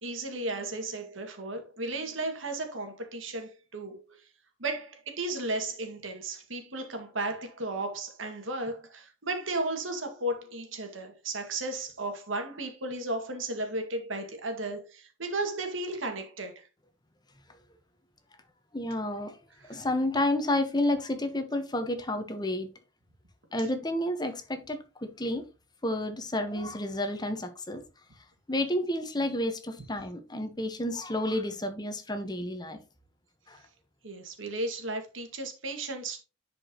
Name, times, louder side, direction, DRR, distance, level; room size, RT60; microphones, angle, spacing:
voice 1, 0.0-4.0 4.6-16.6 19.6-19.8 34.0-36.2, right 2 dB, 90° right, 2.1 m, -34 dB
voice 2, 18.7-19.4 19.7-22.7 23.5-25.4 25.8-27.8 28.5-32.8 33.5-33.6, left 1 dB, 20° left, 1.2 m, -30 dB
10.5 x 5.1 x 3.0 m
head